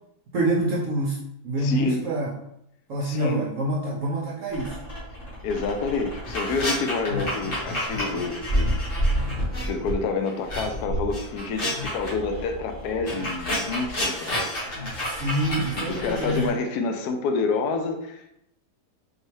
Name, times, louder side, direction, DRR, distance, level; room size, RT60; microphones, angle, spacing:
voice 1, 0.3-1.2 1.4-2.3 2.9-4.8 15.0-16.5, right 1 dB, 65° right, -2 dB, 0.8 m, -26 dB
voice 2, 1.6-2.0 3.0-3.4 5.4-8.7 9.7-14.5 15.8-18.3, left 4 dB, 80° left, 6 dB, 1.1 m, -28 dB
sound 1, 4.5-9.9 10.2-16.5, equal, 50° left, 1.7 m, -29 dB
4.4 x 3.2 x 3.1 m, 0.78 s
omnidirectional pair, 1.7 m